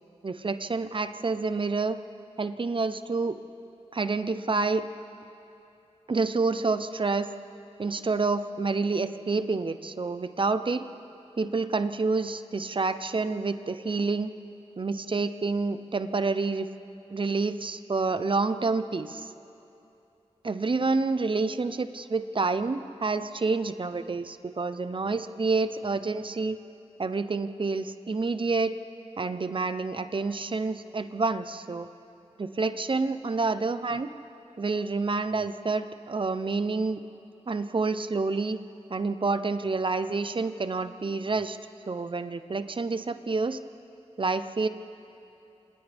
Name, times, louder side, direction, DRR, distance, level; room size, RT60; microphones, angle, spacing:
voice 1, 0.2-2.0 2.4-3.4 3.9-4.8 6.1-7.3 7.8-10.8 11.4-14.3 14.8-16.7 17.1-19.3 20.4-26.6 27.0-28.7 29.2-31.9 32.4-34.1 34.6-37.0 37.5-38.6 38.9-41.6 41.9-43.6 44.2-44.7, right 3 dB, 45° right, 11 dB, 0.8 m, -28 dB
28.5 x 27.0 x 3.6 m, 2.8 s
wide cardioid pair, 90°, 12 cm